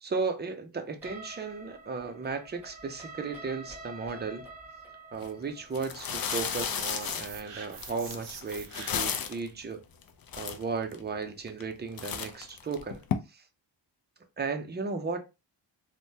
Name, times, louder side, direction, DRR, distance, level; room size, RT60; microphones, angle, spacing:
voice 1, 0.0-4.5 5.1-9.8 10.4-13.0 13.3-13.4 14.4-15.2, right 4 dB, 25° right, 0.4 m, -35 dB
sound 1, 1.0-8.8, right 2 dB, 5° right, 0.9 m, -48 dB
sound 2, 5.1-5.3 5.7-9.5 10.0-10.1 10.3-11.0 11.5-11.7 12.0-13.1, left 8 dB, 55° left, 0.5 m, -33 dB
sound 3, 6.2-9.3, right 6 dB, 75° right, 0.8 m, -45 dB
3.3 x 2.1 x 2.7 m
wide cardioid pair, 155°, 44 cm